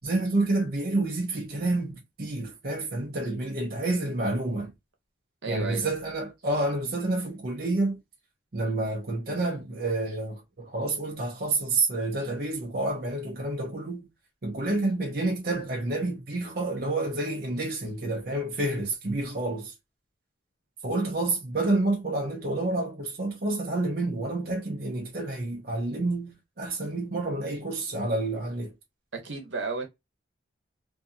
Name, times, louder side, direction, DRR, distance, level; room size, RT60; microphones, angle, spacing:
voice 1, 0.0-4.7 5.5-8.0 8.5-14.1 14.4-19.7 20.8-28.7, right 2 dB, 50° right, 0.6 m, -29 dB
voice 2, 5.4-5.9 29.1-29.9, right 4 dB, 75° right, 1.0 m, -33 dB
2.7 x 2.5 x 2.4 m
head